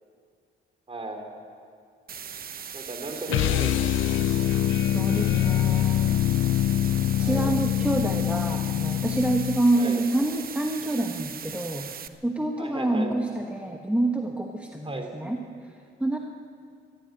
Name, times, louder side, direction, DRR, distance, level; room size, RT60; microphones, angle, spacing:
voice 1, 0.9-1.3 2.7-3.9 7.1-7.6 9.8-10.0 12.6-13.1 14.9-15.1, right 2 dB, 30° right, 4 dB, 3.5 m, -35 dB
sound 1, 2.1-12.1, right 7 dB, 45° right, 1.0 m, -39 dB
sound 2, 3.3-9.7, left 12 dB, 80° left, 0.5 m, -24 dB
voice 2, 4.9-6.2 7.2-15.4 16.0-16.2, right 1 dB, 5° right, 2 dB, 1.3 m, -27 dB
21.0 x 13.5 x 9.3 m, 2.2 s
cardioid pair, 90°, 20 cm